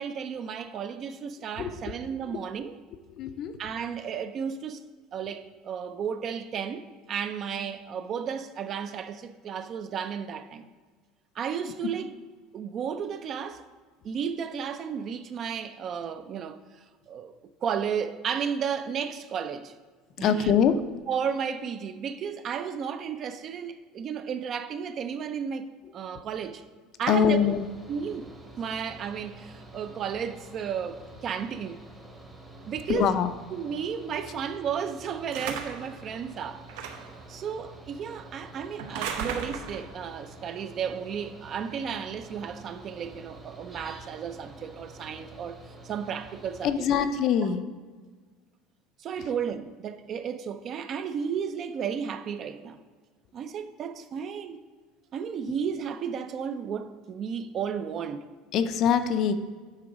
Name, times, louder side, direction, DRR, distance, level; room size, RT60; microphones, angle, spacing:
voice 1, 0.0-2.7 3.6-4.8 5.1-10.7 11.4-12.1 12.5-13.6 14.0-16.6 17.1-17.3 17.6-19.7 20.2-20.6 21.1-26.6 27.0-27.5 27.9-31.8 32.7-33.2 33.5-36.6 37.3-45.6 45.8-47.1 47.4-47.5 49.0-52.8 53.3-54.6 55.1-58.3, right 7 dB, 30° right, 0.4 m, -33 dB
voice 2, 3.1-3.5 11.8-11.9 20.2-20.8 27.1-27.6 32.9-33.3 46.6-47.6 55.5-55.6 58.5-59.3, left 8 dB, 40° left, 0.4 m, -24 dB
Mechanical fan, 27.1-46.7, right 2 dB, 10° right, 0.8 m, -48 dB
sound 1, 35.3-35.9 36.7-37.2 38.8-39.9, right 7 dB, 85° right, 0.8 m, -35 dB
9.6 x 3.8 x 5.1 m
cardioid pair, 175°, 0 cm